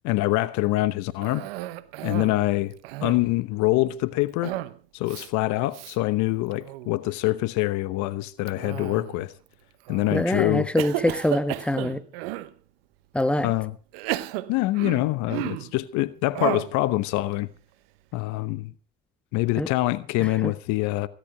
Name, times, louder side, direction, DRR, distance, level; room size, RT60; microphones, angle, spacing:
voice 1, 0.0-1.5 2.0-2.7 3.0-4.6 4.9-9.3 9.9-10.7 13.4-13.7 14.5-17.5 18.1-18.7 19.3-21.1, left 18 dB, 70° left, 1.0 m, -25 dB
Cough, 1.2-2.4 2.7-3.4 4.4-4.8 5.1-5.3 5.7-6.0 6.5-6.9 8.5-9.3 9.9-10.3 10.8-12.5 13.2-13.3 13.9-15.7 16.3-16.8, right 16 dB, 85° right, 0.9 m, -33 dB
voice 2, 10.1-12.0 13.1-13.5 19.6-19.7 20.2-20.5, left 1 dB, 5° left, 1.3 m, -25 dB
16.5 x 11.5 x 4.9 m
hypercardioid pair, 65°, 29 cm